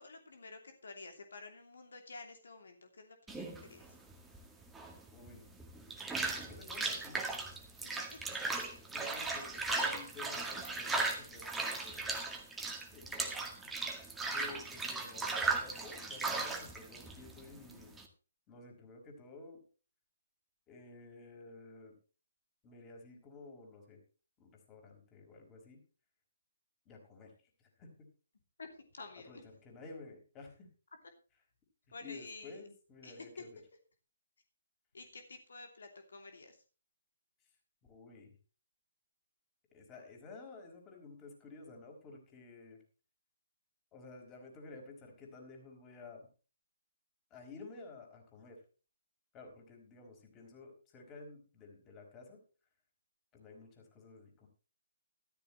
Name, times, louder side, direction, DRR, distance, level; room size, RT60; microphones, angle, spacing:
voice 1, 0.0-3.8 7.8-8.2 28.6-28.7 28.9-29.4 31.9-32.6 33.0-33.2 34.9-36.6, left 3 dB, 65° left, 5 dB, 2.8 m, -51 dB
sound 1, 3.3-18.0, right 3 dB, 5° right, 2.0 m, -37 dB
voice 2, 5.1-5.5 6.2-7.6 8.6-12.2 12.9-13.5 14.3-18.0 18.5-19.6 20.7-21.9 22.6-24.0 24.4-25.8 26.8-27.3 27.6-27.9 29.3-30.7 31.9-33.6 37.8-38.3 39.7-42.8 43.9-46.3 47.3-48.6 49.3-52.4 53.3-54.5, left 3 dB, 20° left, 2 dB, 4.7 m, -53 dB
14.0 x 13.5 x 3.2 m, 0.35 s
figure-of-eight pair, 140°, 0 cm